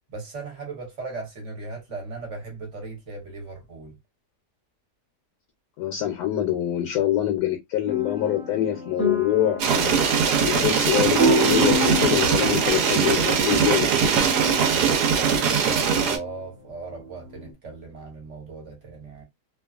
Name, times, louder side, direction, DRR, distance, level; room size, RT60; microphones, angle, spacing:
voice 1, 0.1-3.9 14.6-19.2, right 3 dB, 50° right, 1.2 m, -37 dB
voice 2, 5.8-14.2, left 12 dB, 75° left, 1.1 m, -25 dB
sound 1, 7.9-17.5, equal, 25° right, 0.4 m, -30 dB
sound 2, 9.6-16.2, right 6 dB, 80° right, 1.2 m, -21 dB
2.8 x 2.3 x 2.3 m
omnidirectional pair, 1.7 m